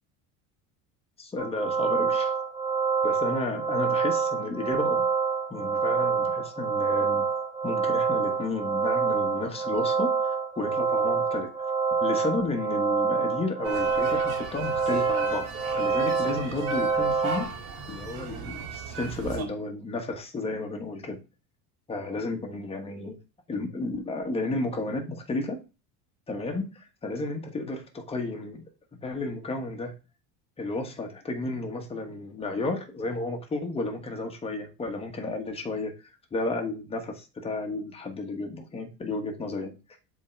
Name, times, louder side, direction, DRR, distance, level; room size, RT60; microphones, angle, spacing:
voice 1, 1.2-2.3 3.0-5.1 5.5-7.2 7.6-11.5 12.0-17.5 17.9-21.2 21.9-23.2 23.5-25.6 26.3-28.6 28.9-29.9 30.6-39.7, left 2 dB, 15° left, 3 dB, 1.3 m, -32 dB
sound 1, 1.4-17.4, right 5 dB, 25° right, 2.9 m, -27 dB
sound 2, 13.6-19.4, right 4 dB, 55° right, 2.4 m, -37 dB
7.3 x 3.8 x 4.5 m, 0.30 s
cardioid pair, 145°, 41 cm